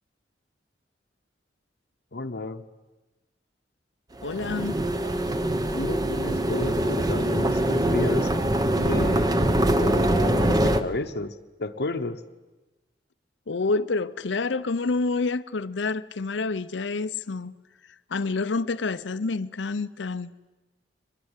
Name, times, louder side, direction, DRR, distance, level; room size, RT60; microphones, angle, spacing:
voice 1, 2.1-2.6 5.7-8.3 8.8-11.3 11.6-12.2, left 2 dB, 65° left, 0.9 m, -32 dB
voice 2, 4.2-4.8 13.5-17.5 18.1-20.3, left 3 dB, 80° left, 0.7 m, -28 dB
sound 1, 4.2-10.8, right 1 dB, 20° right, 1.0 m, -23 dB
23.0 x 20.0 x 8.2 m
head